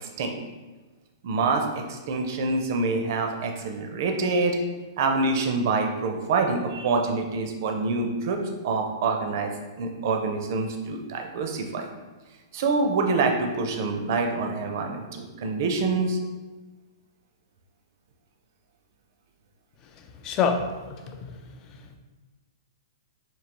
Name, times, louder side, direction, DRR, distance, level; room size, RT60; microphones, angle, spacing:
voice 1, 0.0-0.3 1.2-4.6 5.0-9.5 9.8-11.9 12.5-16.2, right 3 dB, 50° right, 4 dB, 0.5 m, -26 dB
voice 2, 19.9-21.4 21.7-22.0, left 6 dB, 25° left, 5 dB, 0.4 m, -29 dB
5.2 x 2.7 x 2.9 m, 1.2 s
hypercardioid pair, 160°, 2 cm